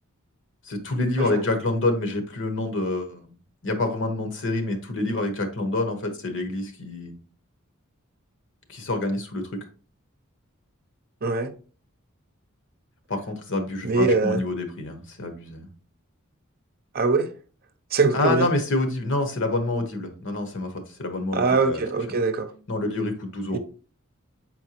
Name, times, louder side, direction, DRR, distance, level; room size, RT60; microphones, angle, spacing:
voice 1, 0.6-3.3 3.6-7.2 8.7-9.4 13.1-15.7 18.1-21.8 22.7-23.6, left 2 dB, 60° left, 1.2 m, -27 dB
voice 2, 11.2-11.5 13.8-14.4 16.9-17.3 17.9-18.5 21.3-22.5 23.5-23.6, right 3 dB, 45° right, 0.7 m, -22 dB
7.3 x 4.5 x 3.0 m
head